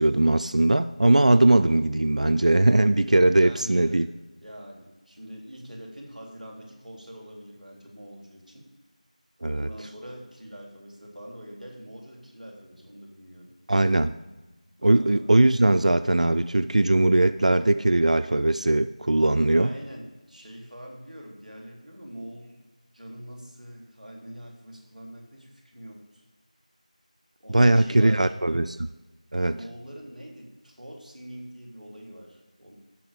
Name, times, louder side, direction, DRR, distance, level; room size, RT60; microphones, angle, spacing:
voice 1, 0.0-4.1 9.4-9.7 13.7-14.1 14.8-19.7 27.5-28.9 29.3-29.6, right 2 dB, 60° right, 0.4 m, -20 dB
voice 2, 3.4-4.1 4.4-8.7 9.5-13.5 14.8-15.4 19.5-22.6 22.9-26.2 27.4-28.3 29.4-32.7, equal, ahead, 2.4 m, -43 dB
15.0 x 6.2 x 5.1 m
figure-of-eight pair, 175°, 4 cm